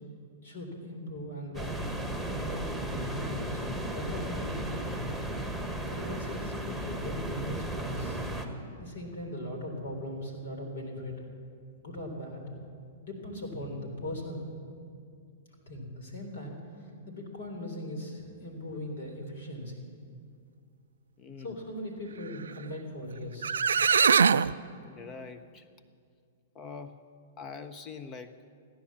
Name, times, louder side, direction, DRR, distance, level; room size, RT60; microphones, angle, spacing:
voice 1, 0.4-1.8 2.2-3.6 3.9-4.9 5.9-8.2 8.8-11.2 11.8-12.4 13.0-14.5 15.6-19.9 21.4-23.6, left 1 dB, 75° left, 2 dB, 3.7 m, -39 dB
sound 1, 1.5-8.5, right 1 dB, 5° left, 1.5 m, -35 dB
voice 2, 21.2-21.6 24.8-25.7 26.5-27.0 27.4-28.4, left 5 dB, 30° left, 9 dB, 0.7 m, -43 dB
sound 2, 23.1-23.2 23.4-24.5, right 6 dB, 85° right, 0.3 m, -22 dB
15.5 x 10.5 x 7.4 m, 2.3 s
hypercardioid pair, 115°, 0 cm